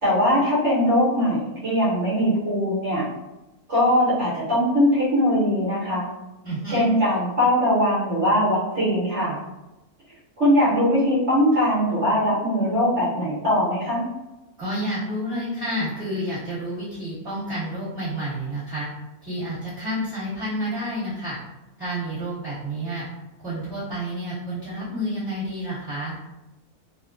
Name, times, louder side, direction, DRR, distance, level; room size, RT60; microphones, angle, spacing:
voice 1, 0.0-3.0 3.7-6.0 6.7-9.4 10.4-14.0, equal, 50° right, -9 dB, 1.5 m, -21 dB
voice 2, 6.4-6.9 14.6-18.9 19.2-21.4 21.8-23.0 23.4-26.2, equal, 25° right, -15 dB, 1.6 m, -29 dB
3.4 x 2.3 x 2.6 m, 1.0 s
omnidirectional pair, 1.6 m